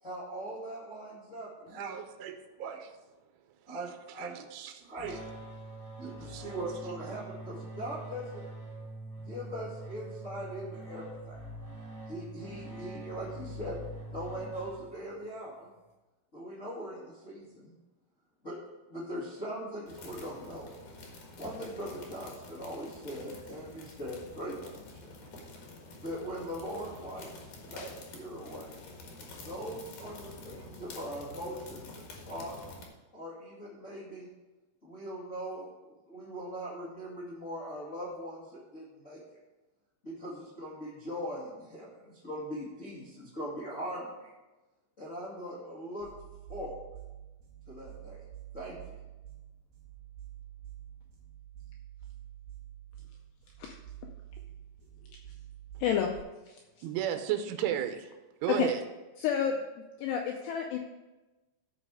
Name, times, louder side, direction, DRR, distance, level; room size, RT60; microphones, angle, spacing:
voice 1, 0.0-2.0 2.6-2.7 3.7-4.4 4.9-5.3 6.0-8.4 9.2-11.4 12.1-13.8 14.1-15.7 16.3-17.7 18.4-18.6 18.9-20.7 21.3-25.1 26.0-27.3 27.6-28.8 29.4-32.5 33.1-34.3 34.8-39.4 40.0-44.3 45.0-46.1 46.5-46.7 47.7-48.2 48.5-48.9, equal, 45° left, -7 dB, 0.9 m, -41 dB
voice 2, 1.7-2.9 3.7-5.2 6.0-7.2 56.8-58.1 58.4-58.8, right 10 dB, 80° right, 7 dB, 3.2 m, -35 dB
sound 1, 5.0-15.2, right 1 dB, 10° left, 1.6 m, -44 dB
sound 2, 19.9-32.9, left 2 dB, 60° left, 2.3 m, -48 dB
sound 3, 46.0-56.2, right 12 dB, 65° right, 4.2 m, -48 dB
voice 3, 55.8-56.1 56.5-56.6 58.5-58.7 59.2-59.5 60.0-60.8, left 9 dB, 80° left, 2 dB, 2.5 m, -29 dB
15.5 x 5.4 x 4.8 m, 1.1 s
omnidirectional pair, 5.5 m